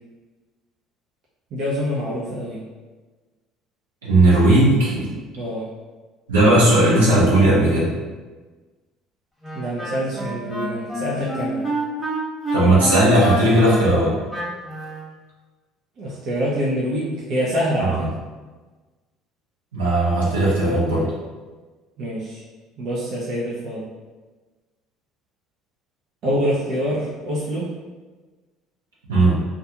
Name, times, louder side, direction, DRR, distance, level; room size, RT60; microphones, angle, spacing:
voice 1, 1.5-2.6 5.3-5.7 9.5-11.7 16.0-18.1 22.0-22.4 22.8-23.8 26.2-27.7, equal, 55° right, -6 dB, 0.5 m, -25 dB
voice 2, 4.0-5.2 6.3-7.9 12.5-14.1 17.8-18.1 19.7-21.1 29.1-29.3, right 1 dB, 80° right, -7 dB, 0.8 m, -16 dB
Wind instrument woodwind instrument, 9.4-15.0, right 1 dB, 5° right, 1.1 m, -28 dB
2.4 x 2.3 x 2.8 m, 1.3 s
figure-of-eight pair, 60°, 0 cm